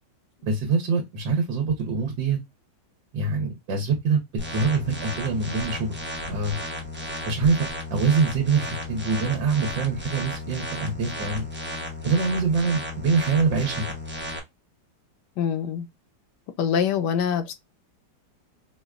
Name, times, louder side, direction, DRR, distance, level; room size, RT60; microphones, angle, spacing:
voice 1, 0.5-2.4 3.1-4.2 4.5-5.9 6.3-6.6 7.3-7.6 7.9-11.5 12.0-13.9, right 4 dB, 80° right, 1.6 m, -24 dB
sound 1, 4.4-14.4, left 1 dB, 15° right, 0.4 m, -34 dB
voice 2, 15.4-15.9 16.6-17.5, left 8 dB, 75° left, 1.1 m, -24 dB
4.8 x 2.3 x 2.3 m
omnidirectional pair, 2.0 m